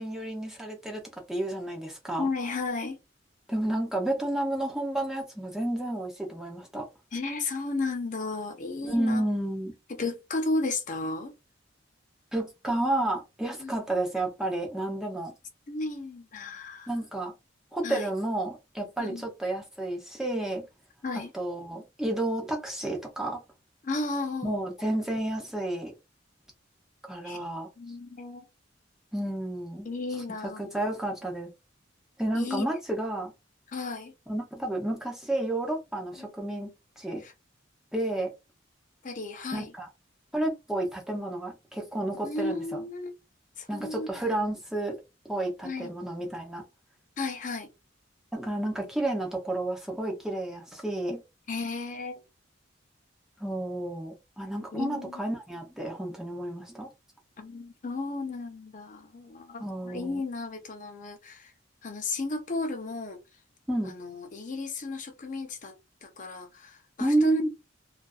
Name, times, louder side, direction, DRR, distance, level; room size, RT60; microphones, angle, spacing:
voice 1, 0.0-2.3 3.5-6.9 8.8-9.7 12.3-15.3 16.9-17.3 17.7-20.7 21.1-23.4 24.4-25.9 27.1-27.7 29.1-29.9 30.4-31.5 32.2-33.3 34.3-36.7 37.0-37.2 37.9-38.3 39.5-39.9 40.3-42.8 43.7-44.9 45.3-46.6 48.3-51.2 53.4-56.9 59.6-60.2 63.7-63.9 67.0-67.5, right 1 dB, 5° right, 0.6 m, -31 dB
voice 2, 2.2-3.0 7.1-9.2 9.9-11.3 13.6-13.7 15.7-16.9 17.8-18.1 19.0-19.3 21.0-21.3 23.8-24.6 27.2-27.4 27.8-28.4 29.8-30.6 32.3-32.7 33.7-34.1 36.2-36.3 37.2-37.3 39.0-39.7 42.2-43.1 43.6-44.2 45.6-45.9 47.2-47.7 51.5-52.2 54.7-55.1 57.4-61.5 61.8-63.2 63.8-65.7 66.0-67.4, left 3 dB, 40° left, 0.5 m, -33 dB
2.5 x 2.4 x 2.3 m
head